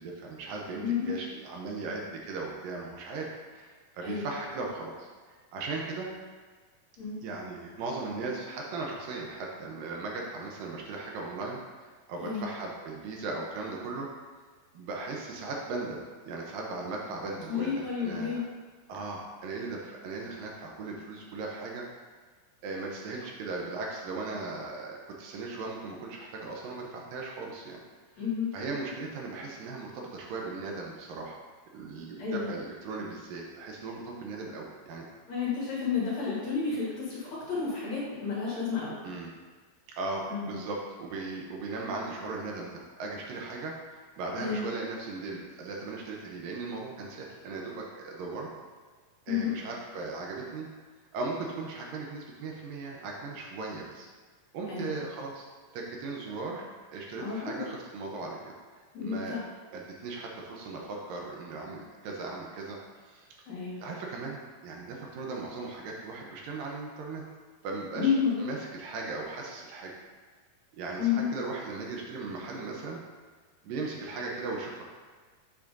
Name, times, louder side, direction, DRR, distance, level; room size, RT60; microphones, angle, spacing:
voice 1, 0.0-6.1 7.2-14.1 14.7-16.0 16.3-18.4 18.9-21.9 22.6-27.8 28.5-31.4 31.7-35.1 39.0-39.3 40.0-48.5 49.3-50.7 51.1-54.1 54.5-55.5 55.7-58.4 59.0-59.4 59.7-63.3 63.8-67.2 67.6-69.9 70.7-73.0 73.6-74.8, right 3 dB, 75° right, -1 dB, 2.3 m, -38 dB
voice 2, 0.8-1.1 4.0-4.3 7.0-7.2 12.2-12.5 17.5-18.4 28.2-28.5 32.2-32.5 35.3-38.9 40.3-40.5 44.4-44.7 49.3-49.5 54.7-55.0 57.2-57.6 58.9-59.4 63.5-63.8 68.0-68.5 71.0-71.3, left 6 dB, 55° left, -7 dB, 2.8 m, -31 dB
7.3 x 7.2 x 2.6 m, 1.5 s
omnidirectional pair, 4.3 m